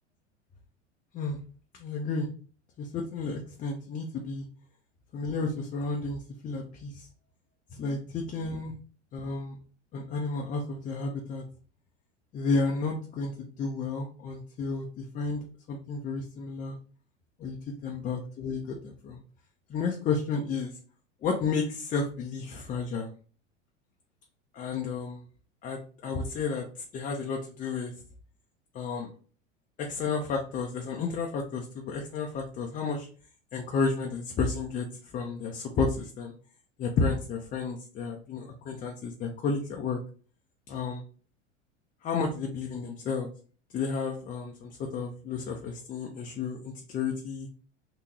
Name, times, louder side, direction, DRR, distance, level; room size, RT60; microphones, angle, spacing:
voice 1, 1.8-2.3 2.8-4.5 5.1-7.1 7.7-8.7 9.1-9.6 9.9-11.4 12.3-16.8 17.4-19.2 19.7-20.7 21.2-23.1 24.5-25.2 25.6-27.9 28.7-29.1 29.8-33.1 33.5-34.9 35.1-36.3 36.8-40.0 40.7-41.0 42.0-43.3 43.7-47.5, left 4 dB, 20° left, 1 dB, 0.5 m, -32 dB
3.5 x 2.8 x 3.0 m, 0.41 s
figure-of-eight pair, 85°, 37 cm